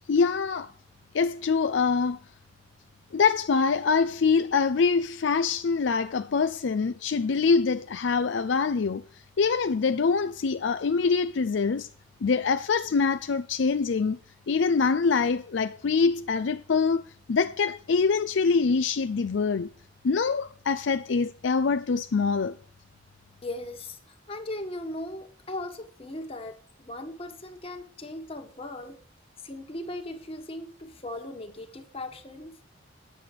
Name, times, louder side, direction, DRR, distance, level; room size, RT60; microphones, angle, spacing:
voice 1, 0.1-0.7 1.1-2.2 3.1-9.0 9.4-11.9 12.2-14.2 14.5-17.0 17.3-19.7 20.0-22.6, left 5 dB, 65° left, 0.4 m, -24 dB
voice 2, 23.4-29.0 29.4-32.6, left 1 dB, 30° left, 1.5 m, -38 dB
9.6 x 7.7 x 6.6 m
head